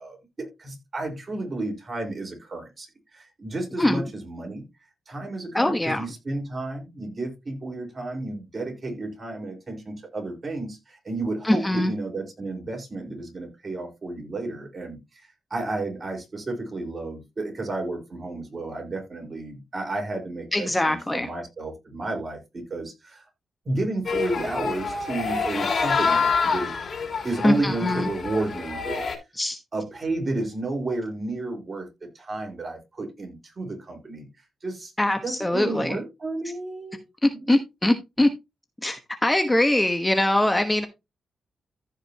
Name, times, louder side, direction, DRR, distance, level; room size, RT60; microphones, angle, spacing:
voice 1, 0.0-2.9 3.1-4.6 5.1-15.0 15.5-23.2 23.6-26.7 27.2-29.0 29.7-31.9 32.1-34.3 34.6-34.9 35.2-37.1 37.3-37.5, right 2 dB, 40° right, 2 dB, 4.5 m, -32 dB
voice 2, 5.5-6.0 11.4-11.9 20.5-21.3 27.4-28.1 29.4-29.6 35.0-36.0 37.2-38.3 38.8-40.9, left 1 dB, 15° left, 7 dB, 1.1 m, -22 dB
sound 1, 24.1-29.2, left 5 dB, 50° left, 3.1 m, -27 dB
15.0 x 5.2 x 2.9 m, 0.23 s
cardioid pair, 90°, 0 cm